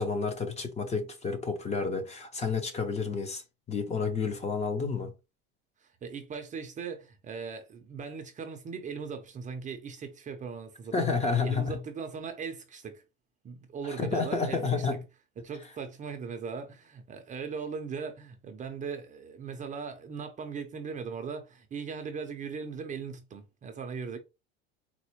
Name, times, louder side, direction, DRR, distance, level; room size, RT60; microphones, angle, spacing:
voice 1, 0.0-3.4 3.7-5.1 10.9-11.8 13.8-15.0, left 4 dB, 20° left, 0.5 m, -30 dB
voice 2, 5.8-11.1 11.4-13.0 13.4-15.0 15.4-24.2, right 5 dB, 25° right, 0.5 m, -39 dB
4.1 x 2.1 x 3.0 m
supercardioid pair, 130°, 30 cm